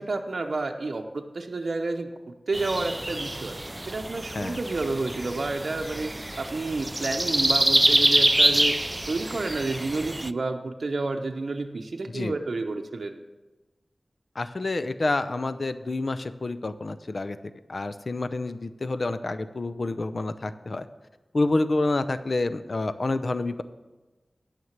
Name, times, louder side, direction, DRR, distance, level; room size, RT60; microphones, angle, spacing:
voice 1, 0.0-3.6 3.9-13.1, right 3 dB, 75° right, 4 dB, 0.7 m, -30 dB
sound 1, 2.5-10.3, right 1 dB, 20° right, 0.3 m, -25 dB
voice 2, 14.4-17.4 17.7-20.9 21.3-23.6, left 2 dB, 60° left, 12 dB, 0.6 m, -28 dB
9.5 x 6.6 x 7.3 m, 1.2 s
wide cardioid pair, 55°, 0 cm